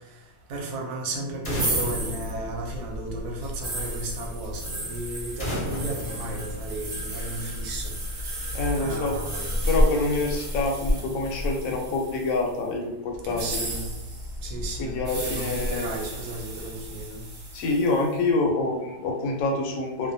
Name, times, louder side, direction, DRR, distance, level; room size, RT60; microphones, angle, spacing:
voice 1, 0.5-7.9 8.7-9.5 13.2-13.9 14.4-17.2, right 2 dB, 75° right, 0 dB, 1.1 m, -34 dB
sound 1, 1.4-3.2 5.4-7.2, left 1 dB, 40° left, 0.6 m, -34 dB
sound 2, 1.5-12.5 13.2-18.1, equal, 50° right, 0.9 m, -31 dB
voice 2, 8.5-9.1 9.7-13.6 14.8-15.9 17.5-20.1, left 3 dB, 70° left, 1 dB, 0.9 m, -26 dB
2.6 x 2.2 x 2.6 m, 1.0 s
omnidirectional pair, 1.7 m